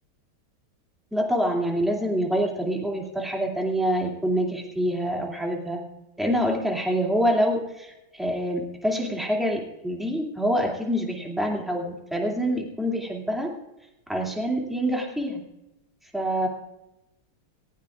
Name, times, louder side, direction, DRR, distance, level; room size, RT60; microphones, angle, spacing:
voice 1, 1.1-5.8 6.2-13.5 14.1-15.4 16.1-16.5, equal, ahead, 0 dB, 2.3 m, -26 dB
18.5 x 16.5 x 2.5 m, 0.93 s
omnidirectional pair, 2.3 m